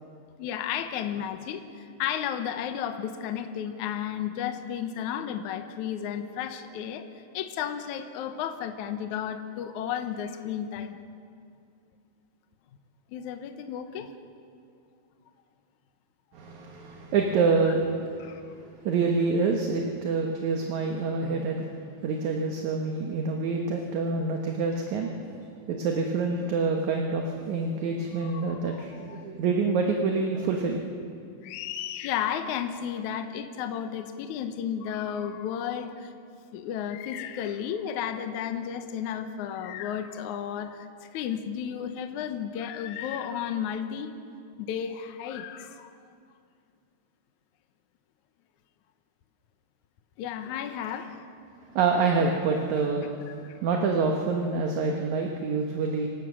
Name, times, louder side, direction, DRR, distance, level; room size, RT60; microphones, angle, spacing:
voice 1, 0.4-7.0 7.3-11.0 13.1-14.1 18.2-18.7 28.3-28.8 29.1-29.3 31.4-36.1 36.5-44.1 44.6-45.9 50.2-51.3 53.4-53.6, left 9 dB, 70° left, 7 dB, 1.9 m, -33 dB
voice 2, 16.3-18.3 18.8-21.7 22.0-25.4 25.7-30.8 51.7-53.2 53.6-56.1, right 4 dB, 65° right, 2 dB, 2.1 m, -27 dB
27.0 x 16.0 x 6.3 m, 2.3 s
omnidirectional pair, 4.5 m